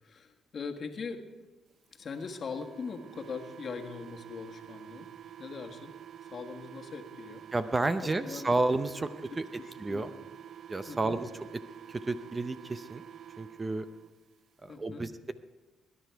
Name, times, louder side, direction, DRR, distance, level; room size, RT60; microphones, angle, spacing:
voice 1, 0.0-1.2 1.9-5.1 5.4-5.9 6.2-7.4 8.0-8.5 9.3-10.1 10.9-11.2 14.7-15.1, left 5 dB, 50° left, 3 dB, 1.4 m, -41 dB
sound 1, 2.0-14.1, right 10 dB, 65° right, 0.4 m, -48 dB
voice 2, 7.5-9.1 9.4-9.5 9.8-10.1 10.7-11.3 11.9-13.0 13.4-13.9 14.6-15.3, right 2 dB, 25° right, 11 dB, 0.6 m, -31 dB
20.5 x 10.0 x 4.7 m, 1.2 s
cardioid pair, 90°, 0 cm